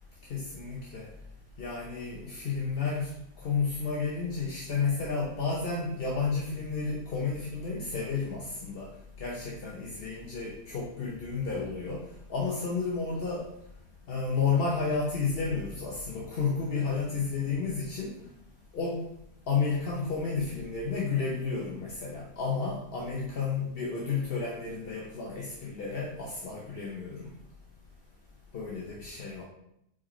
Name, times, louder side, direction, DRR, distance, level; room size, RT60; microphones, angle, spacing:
voice 1, 0.3-1.1 1.6-3.1 3.4-8.9 9.2-12.0 12.3-13.4 14.1-18.2 18.7-19.0 19.5-27.3 28.5-29.4, left 5 dB, 45° left, -3 dB, 0.8 m, -31 dB
4.9 x 4.5 x 4.3 m, 0.78 s
omnidirectional pair, 1.8 m